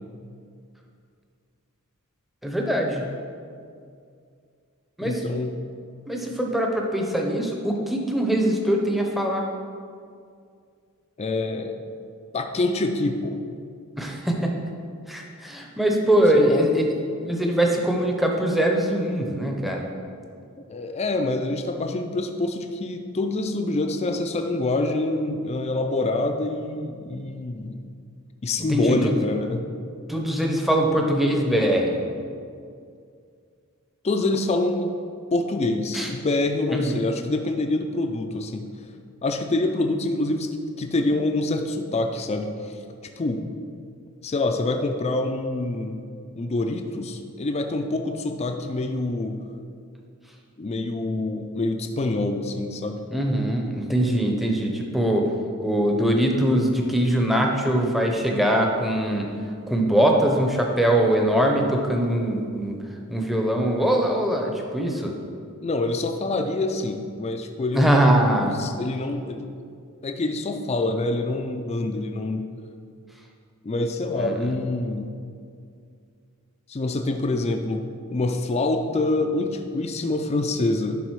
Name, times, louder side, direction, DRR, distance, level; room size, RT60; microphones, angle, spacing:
voice 1, 2.4-3.1 5.0-5.2 6.1-9.4 14.0-14.5 15.1-16.9 17.2-19.9 28.7-29.1 30.1-32.0 35.9-36.1 36.7-37.0 53.1-55.3 55.6-59.3 59.7-62.8 63.1-65.1 67.7-68.7 74.2-74.3, right 1 dB, ahead, 0 dB, 0.7 m, -22 dB
voice 2, 5.0-5.5 11.2-11.7 12.3-13.4 16.3-16.6 20.7-27.8 28.4-29.6 34.0-34.9 35.3-38.6 39.2-40.5 40.8-42.8 43.2-43.5 44.2-46.0 46.4-49.4 50.6-53.0 65.6-68.3 68.6-69.4 70.0-72.5 73.6-75.1 76.7-77.8 78.1-81.0, left 2 dB, 30° left, 5 dB, 0.4 m, -26 dB
11.0 x 4.0 x 4.7 m, 2.3 s
head